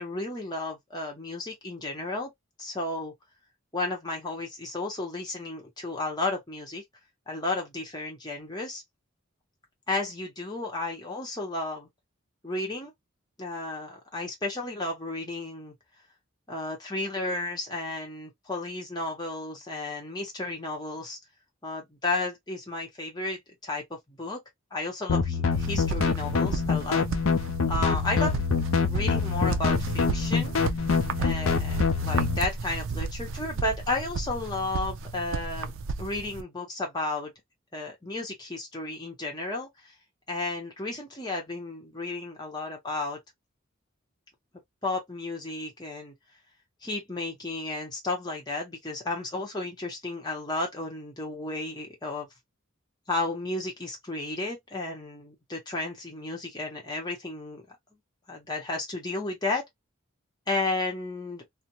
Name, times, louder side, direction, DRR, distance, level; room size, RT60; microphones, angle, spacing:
voice 1, 0.0-2.3 2.6-3.1 3.7-6.8 7.3-8.8 9.9-11.9 12.4-12.9 13.4-15.7 16.5-21.2 21.6-24.4 24.7-27.0 27.7-28.3 28.8-30.5 31.2-35.7 36.0-37.3 37.7-39.9 40.3-43.2 44.8-46.1 46.8-52.3 53.1-57.8 58.3-59.6 60.5-61.4, left 2 dB, 20° left, 1.0 m, -33 dB
sound 1, 25.1-32.4, left 5 dB, 90° left, 0.5 m, -26 dB
sound 2, 25.5-36.4, right 4 dB, 75° right, 0.4 m, -34 dB
2.5 x 2.1 x 2.8 m
head